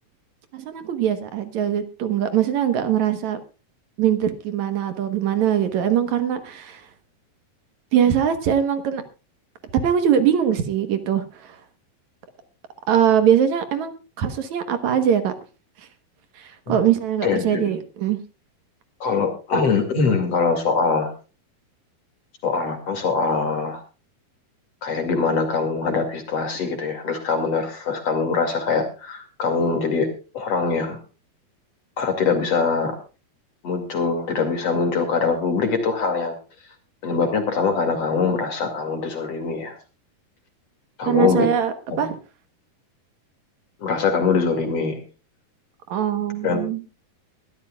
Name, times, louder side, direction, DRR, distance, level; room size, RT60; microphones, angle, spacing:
voice 1, 0.5-3.4 4.0-6.9 7.9-9.0 9.8-11.6 12.9-15.3 16.4-18.2 41.1-42.2 45.9-46.8, right 9 dB, 60° right, 10 dB, 2.1 m, -22 dB
voice 2, 17.2-17.7 19.0-21.1 22.4-23.8 24.8-30.1 30.3-31.0 32.0-33.0 33.6-36.3 37.0-39.8 41.0-41.5 41.9-42.0 43.8-45.0 46.4-46.6, left 4 dB, 45° left, 6 dB, 3.0 m, -23 dB
22.0 x 13.0 x 2.3 m, 0.32 s
omnidirectional pair, 4.4 m